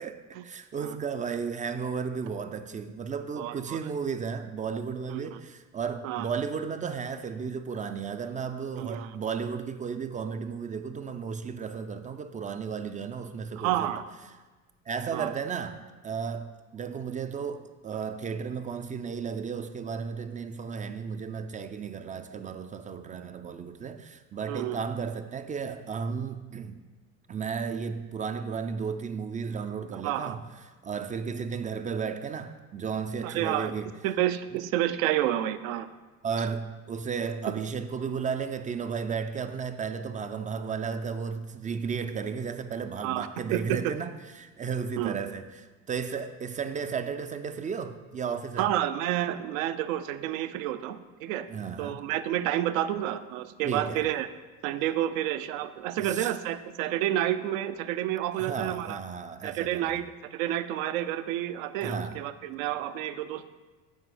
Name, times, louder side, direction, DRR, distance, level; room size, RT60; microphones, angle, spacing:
voice 1, 0.0-13.9 14.9-26.8 27.3-30.4 30.8-33.9 36.2-44.1 44.4-48.7 51.5-52.0 53.6-54.0 56.0-56.3 58.3-59.9 61.8-62.2, right 6 dB, 20° right, 0.3 m, -34 dB
voice 2, 3.4-3.8 5.1-5.4 6.0-6.3 8.8-9.2 13.6-14.0 15.1-15.3 24.5-24.8 29.9-30.4 33.2-33.7 34.0-35.9 37.5-37.6 43.0-43.9 45.0-45.1 48.6-51.5 51.8-54.3 54.6-59.0 59.4-60.1 60.3-63.4, right 12 dB, 75° right, 0.6 m, -30 dB
8.3 x 4.4 x 4.9 m
hypercardioid pair, 75°, 41 cm